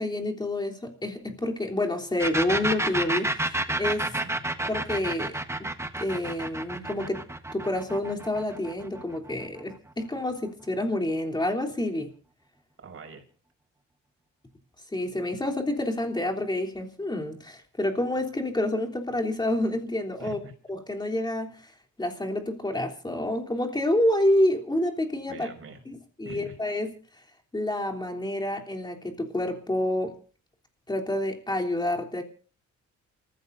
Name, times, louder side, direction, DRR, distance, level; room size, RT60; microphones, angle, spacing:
voice 1, 0.0-4.1 4.7-5.4 6.0-7.2 7.5-12.1 14.9-20.4 20.7-21.5 22.0-25.5 25.9-26.9 27.5-30.1 30.9-32.2, left 1 dB, 15° left, 3.4 m, -28 dB
sound 1, 2.2-9.7, right 1 dB, 10° right, 1.3 m, -30 dB
voice 2, 4.0-4.4 12.8-13.3 20.2-20.5 25.3-25.8 26.2-26.6, right 3 dB, 45° right, 5.6 m, -43 dB
28.5 x 15.0 x 2.7 m
cardioid pair, 90°, 30 cm